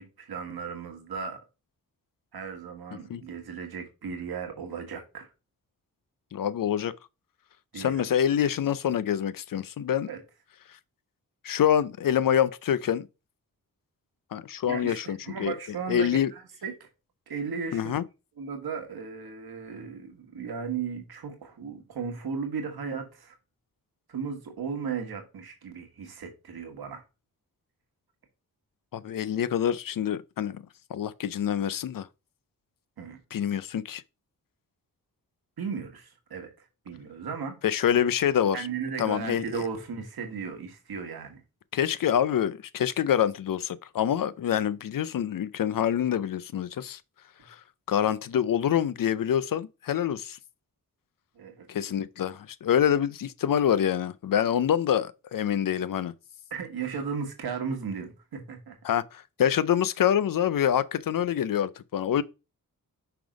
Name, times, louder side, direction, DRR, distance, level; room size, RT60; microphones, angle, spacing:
voice 1, 0.0-1.4 2.3-5.3 7.7-8.0 10.1-10.2 14.7-16.9 17.3-17.9 18.4-23.4 24.1-27.0 33.0-33.2 35.6-37.6 38.5-41.4 51.3-51.7 56.5-58.8, right 6 dB, 85° right, 1.5 m, -36 dB
voice 2, 6.3-6.9 7.7-10.1 11.4-13.1 14.3-15.5 15.9-16.3 17.7-18.0 28.9-30.6 30.9-32.1 33.3-34.0 37.6-38.6 39.0-39.4 41.7-47.0 47.5-47.6 47.9-50.4 51.7-56.1 58.8-62.2, left 9 dB, 65° left, 0.5 m, -26 dB
5.8 x 3.5 x 5.0 m
cardioid pair, 50°, 36 cm